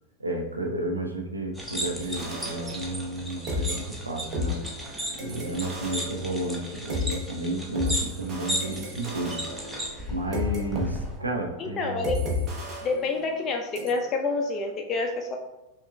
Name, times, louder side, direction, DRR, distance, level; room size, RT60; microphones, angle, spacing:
voice 1, 0.2-4.6 5.2-9.4 10.1-12.3, right 1 dB, 80° right, 2 dB, 0.5 m, -32 dB
sound 1, 1.6-11.2, equal, 5° right, 0.7 m, -35 dB
sound 2, 2.0-3.2 3.5-7.2 7.8-10.9 11.2-11.4 12.0-13.5 13.8-13.9, left 2 dB, 30° right, 0.9 m, -33 dB
voice 2, 11.6-12.2 12.8-15.4, left 3 dB, 30° left, 3 dB, 0.3 m, -28 dB
5.5 x 2.3 x 2.3 m, 0.99 s
figure-of-eight pair, 90°, 0 cm